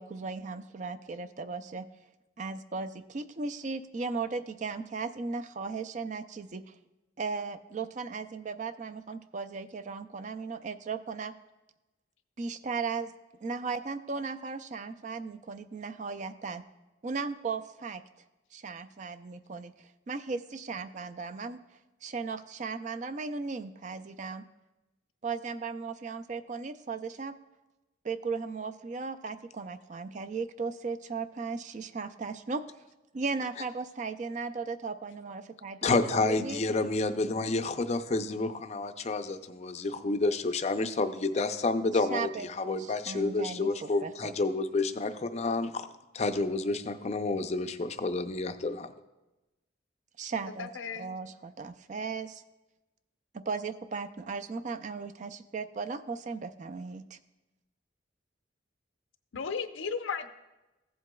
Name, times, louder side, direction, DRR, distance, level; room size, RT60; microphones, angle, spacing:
voice 1, 0.0-1.9 2.4-6.7 7.2-11.3 12.4-13.1 13.4-16.6 17.0-18.0 18.5-21.6 22.0-24.4 25.2-27.3 28.0-32.6 33.1-36.6 42.1-44.3 50.2-50.7 51.0-52.4 53.3-57.2, right 4 dB, 40° right, 10 dB, 0.4 m, -36 dB
voice 2, 35.8-45.9 46.1-48.9, left 3 dB, 35° left, 9 dB, 0.4 m, -29 dB
voice 3, 50.4-51.1 59.3-60.3, left 5 dB, 90° left, 8 dB, 0.6 m, -35 dB
15.0 x 7.8 x 2.3 m, 1.0 s
head